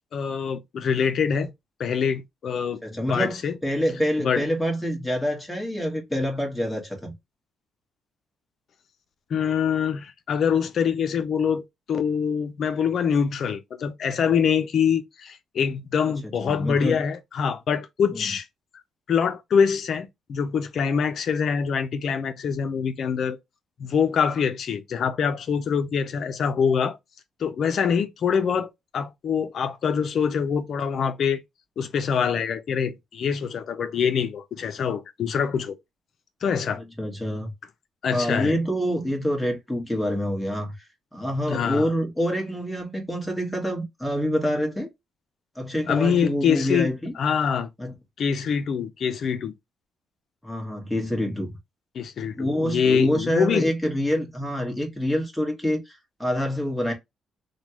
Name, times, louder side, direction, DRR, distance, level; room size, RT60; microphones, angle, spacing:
voice 1, 0.1-1.5 1.8-2.8 3.1-3.6 4.2-4.4 9.3-11.6 11.9-18.5 19.1-23.4 23.8-27.0 27.4-31.4 31.8-35.8 36.4-36.8 38.0-38.5 41.5-41.9 45.9-46.9 47.2-47.7 48.2-49.5 51.9-53.7, left 7 dB, 60° left, 0.6 m, -24 dB
voice 2, 2.8-7.1 16.1-17.0 18.1-18.2 37.0-37.5 38.1-40.8 41.1-44.9 45.5-47.1 47.8-47.9 50.4-51.6 52.4-56.9, equal, 5° left, 1.5 m, -26 dB
3.3 x 2.3 x 2.9 m
cardioid pair, 90°, 0 cm